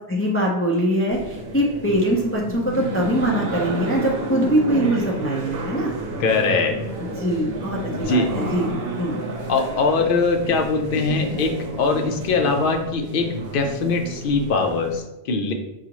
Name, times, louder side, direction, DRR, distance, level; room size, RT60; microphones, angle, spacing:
voice 1, 0.1-5.9 7.0-8.7 9.0-9.2, equal, 20° left, -3 dB, 0.3 m, -22 dB
sound 1, 1.1-15.0, right 2 dB, 70° right, 0.9 m, -31 dB
voice 2, 6.2-6.8 7.9-8.3 9.5-15.5, left 4 dB, 60° left, 4 dB, 0.7 m, -22 dB
4.9 x 2.4 x 2.9 m, 0.93 s
omnidirectional pair, 1.1 m